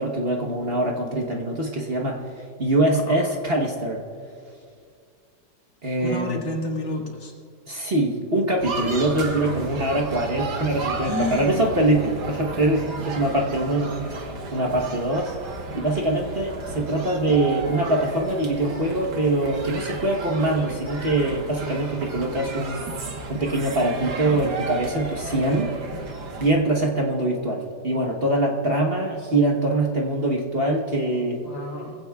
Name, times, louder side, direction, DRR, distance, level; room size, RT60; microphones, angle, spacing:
voice 1, 0.0-2.2 2.6-4.0 5.8-6.5 7.7-14.1 14.5-15.3 15.7-22.8 23.3-25.7 26.4-31.4, right 1 dB, 40° right, 0 dB, 1.1 m, -23 dB
voice 2, 6.0-7.3 11.0-11.7 31.4-32.0, left 2 dB, 85° left, -1 dB, 2.6 m, -30 dB
sound 1, 8.6-26.5, right 3 dB, 65° right, 1.8 m, -33 dB
22.0 x 16.0 x 2.3 m, 2.3 s
omnidirectional pair, 2.0 m